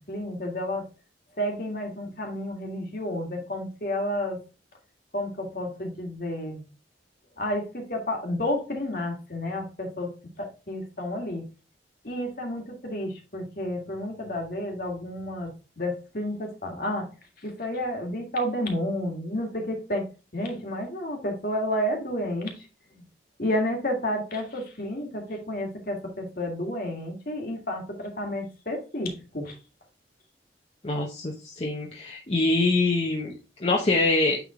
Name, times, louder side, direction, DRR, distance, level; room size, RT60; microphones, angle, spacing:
voice 1, 0.1-0.8 1.4-4.4 5.1-6.6 7.4-10.1 10.4-11.5 12.0-17.0 17.4-20.0 20.3-22.5 22.9-23.0 23.4-29.5, left 1 dB, 50° left, 1 dB, 1.9 m, -31 dB
voice 2, 30.8-34.4, left 2 dB, 35° left, -1 dB, 0.9 m, -25 dB
9.1 x 3.7 x 3.7 m, 0.32 s
head